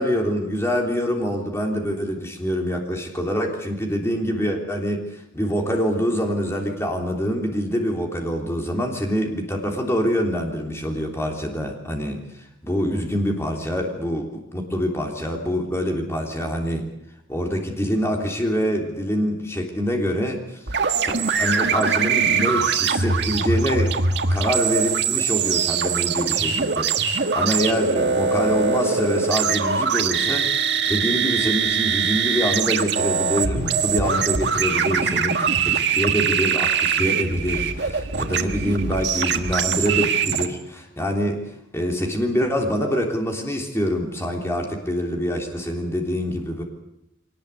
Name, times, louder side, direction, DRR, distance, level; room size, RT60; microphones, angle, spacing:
voice 1, 0.0-12.2 12.6-16.8 17.3-20.6 21.0-21.1 21.4-24.0 24.3-41.4 41.7-46.6, equal, 15° left, 1 dB, 3.4 m, -25 dB
sound 1, 20.7-40.5, right 6 dB, 60° right, 1.6 m, -22 dB
24.0 x 19.0 x 8.4 m, 0.83 s
head